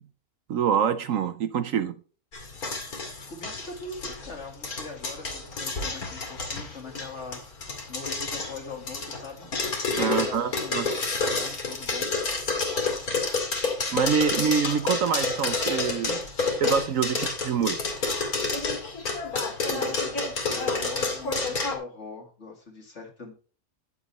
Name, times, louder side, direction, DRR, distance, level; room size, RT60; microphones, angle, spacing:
voice 1, 0.5-1.9 10.0-10.9 13.9-16.2 16.6-17.8, right 7 dB, 65° right, 1.0 m, -25 dB
sound 1, 2.3-21.8, left 3 dB, 80° left, 2.7 m, -29 dB
voice 2, 3.3-9.5 9.9-11.0 11.3-12.1 19.1-23.3, left 3 dB, 50° left, 2.6 m, -42 dB
10.0 x 7.1 x 4.2 m
omnidirectional pair, 1.6 m